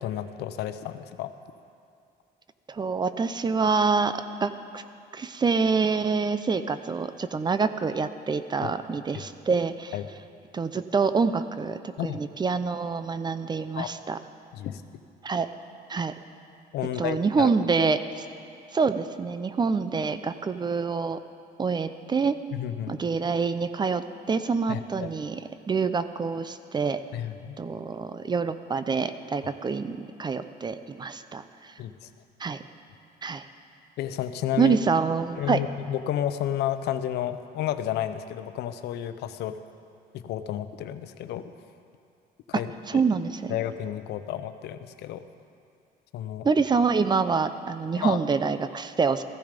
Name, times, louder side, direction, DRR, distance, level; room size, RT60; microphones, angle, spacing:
voice 1, 0.0-1.3 8.6-8.7 9.9-10.1 12.0-12.2 13.8-13.9 14.5-14.8 16.7-17.5 22.5-23.0 24.7-25.1 27.1-27.6 31.8-32.1 34.0-34.7 35.4-39.6 40.1-41.5 42.5-43.0 43.5-45.2 46.1-46.5 47.9-48.2, left 11 dB, 80° left, 10 dB, 0.8 m, -31 dB
voice 2, 2.7-4.8 5.1-9.9 10.5-14.2 15.2-15.5 15.9-16.1 17.0-18.0 18.7-21.2 21.6-22.4 22.9-25.4 25.7-27.0 27.6-31.4 32.4-32.6 33.2-33.4 34.6-35.6 42.5-42.6 42.9-43.6 46.4-49.2, right 5 dB, 25° right, 11 dB, 0.6 m, -26 dB
15.0 x 15.0 x 5.2 m, 2.4 s
cardioid pair, 110°, 17 cm